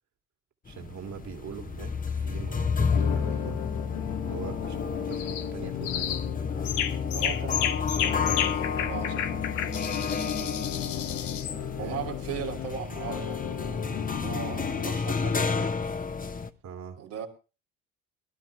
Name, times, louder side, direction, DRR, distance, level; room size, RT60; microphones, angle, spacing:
voice 1, 0.6-3.6 4.3-6.2 10.4-10.6 11.8-12.0 16.6-17.0, right 7 dB, 50° right, 2.1 m, -42 dB
sound 1, 0.7-16.5, left 5 dB, 25° left, 1.1 m, -31 dB
sound 2, 2.9-14.9, left 11 dB, 65° left, 1.4 m, -37 dB
sound 3, 5.1-5.5 5.8-6.3 6.6-11.6, left 10 dB, 85° left, 0.9 m, -32 dB
voice 2, 7.1-9.5 11.8-15.7 17.0-17.3, right 8 dB, 90° right, 2.8 m, -38 dB
21.5 x 12.0 x 3.1 m
hypercardioid pair, 60°, 36 cm